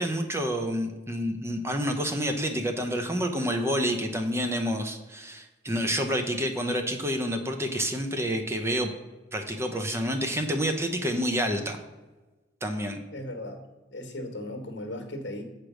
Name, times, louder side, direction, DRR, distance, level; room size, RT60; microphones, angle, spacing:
voice 1, 0.0-8.9 9.3-11.8 12.6-13.0, equal, 15° right, 5 dB, 0.7 m, -28 dB
voice 2, 13.1-13.6 13.9-15.4, left 1 dB, 65° left, 6 dB, 1.5 m, -36 dB
7.5 x 5.0 x 6.2 m, 1.2 s
head